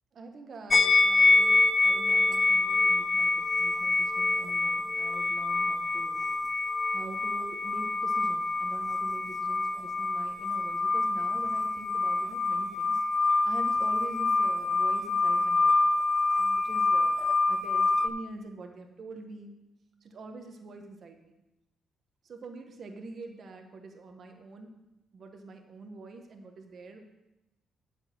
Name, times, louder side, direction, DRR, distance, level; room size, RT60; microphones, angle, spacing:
voice 1, 0.1-6.2 6.9-13.0 13.3-15.7 16.4-17.2 17.5-19.5 20.0-21.3 22.2-24.7 25.1-27.0, right 3 dB, 50° right, 4 dB, 1.3 m, -45 dB
sound 1, 0.7-18.1, left 3 dB, 30° left, 0.6 m, -26 dB
7.9 x 6.5 x 6.2 m, 0.97 s
cardioid pair, 90°, 0 cm